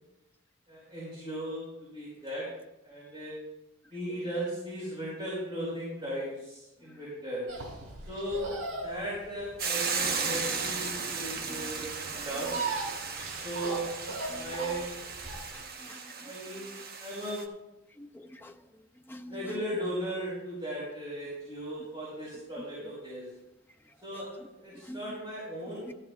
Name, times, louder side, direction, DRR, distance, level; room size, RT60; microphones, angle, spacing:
voice 1, 0.7-2.5 2.8-3.4 3.9-7.4 8.1-8.5 8.8-12.5 13.4-13.9 14.3-15.0 16.2-16.7 17.0-17.4 19.2-23.2 24.0-24.3 24.6-26.0, right 1 dB, 20° right, -10 dB, 4.8 m, -37 dB
sound 1, 7.5-15.6, right 3 dB, 80° right, 3.3 m, -38 dB
Hiss / Boiling, 9.6-17.4, right 5 dB, 45° right, 0.9 m, -35 dB
voice 2, 15.5-16.0 18.0-18.5 19.1-19.4 24.9-25.2 25.9-26.0, equal, 10° left, 6 dB, 0.5 m, -46 dB
14.0 x 12.5 x 2.4 m, 0.92 s
head